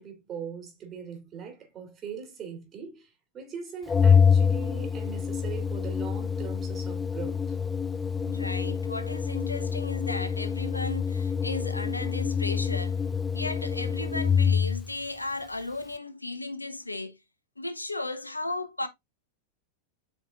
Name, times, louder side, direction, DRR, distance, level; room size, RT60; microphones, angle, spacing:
voice 1, 0.0-7.6, right 6 dB, 25° right, 3.2 m, -40 dB
Organ, 3.9-14.9, left 6 dB, 15° left, 0.5 m, -26 dB
voice 2, 8.2-13.1 13.3-17.2 17.6-18.9, left 2 dB, 85° left, 0.9 m, -35 dB
8.3 x 5.3 x 2.4 m
figure-of-eight pair, 90°, 0 cm